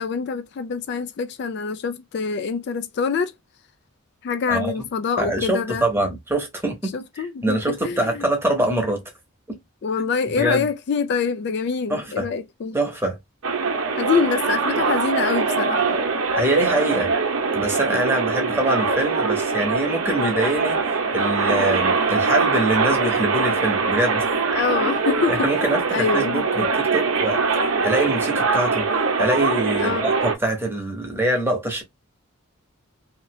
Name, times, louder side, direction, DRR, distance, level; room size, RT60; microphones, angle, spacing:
voice 1, 0.0-3.3 4.2-5.9 6.9-8.3 9.8-12.8 14.0-16.0 24.5-26.7 29.8-30.1, left 5 dB, 50° left, 0.3 m, -25 dB
voice 2, 5.2-9.0 9.5-9.6 10.4-10.6 11.9-12.3 12.7-13.2 16.4-17.1 17.5-20.8 21.1-24.3 25.3-27.4 27.8-28.9 29.2-31.8, right 1 dB, 10° right, 0.8 m, -24 dB
sound 1, 13.4-30.3, right 4 dB, 65° right, 0.7 m, -22 dB
2.8 x 2.6 x 2.9 m
head